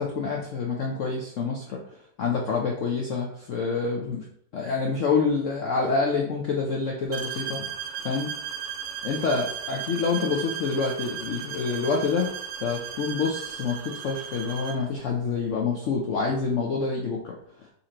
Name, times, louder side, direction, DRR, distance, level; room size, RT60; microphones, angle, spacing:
voice 1, 0.0-1.8 2.2-4.2 4.5-7.7 8.0-8.3 9.0-12.3 12.6-17.3, left 4 dB, 85° left, -1 dB, 0.6 m, -27 dB
sound 1, 7.1-14.9, right 8 dB, 75° right, 1.2 m, -36 dB
4.2 x 2.6 x 4.3 m, 0.66 s
omnidirectional pair, 2.0 m